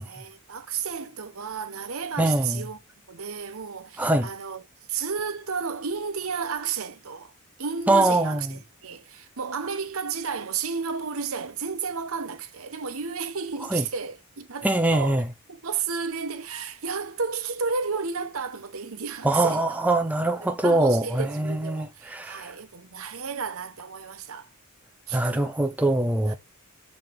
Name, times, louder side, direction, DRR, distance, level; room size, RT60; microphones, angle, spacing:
voice 1, 0.0-2.8 3.1-4.6 4.9-7.3 7.6-15.2 15.5-19.8 20.4-24.5 25.1-25.5 26.3-26.4, right 5 dB, 70° right, 1.1 m, -32 dB
voice 2, 2.2-2.6 4.0-4.3 7.9-8.5 13.7-13.8 14.6-15.3 19.2-22.5 25.1-26.3, right 2 dB, 5° right, 0.7 m, -23 dB
6.8 x 3.9 x 3.5 m
head